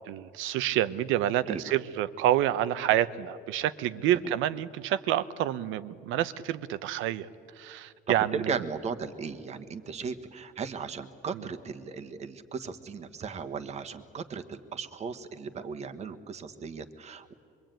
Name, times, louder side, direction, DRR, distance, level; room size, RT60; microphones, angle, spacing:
voice 1, 0.1-7.3 7.6-8.6 11.3-11.5, right 12 dB, 85° right, 14 dB, 1.0 m, -28 dB
voice 2, 8.5-17.3, right 5 dB, 35° right, 9 dB, 1.3 m, -37 dB
25.0 x 23.5 x 9.1 m, 2.5 s
cardioid pair, 160°, 20 cm